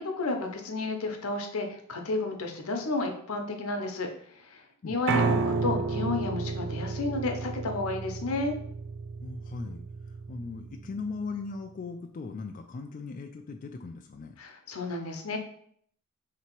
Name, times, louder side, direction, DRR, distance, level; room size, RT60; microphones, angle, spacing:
voice 1, 0.0-4.1 4.3-8.6 14.4-15.4, left 2 dB, 85° left, 3 dB, 0.7 m, -32 dB
Piano, 5.1-11.2, right 4 dB, 60° right, 0.4 m, -31 dB
voice 2, 9.2-14.4, left 4 dB, 40° left, 4 dB, 0.3 m, -39 dB
3.3 x 2.9 x 4.5 m, 0.64 s
head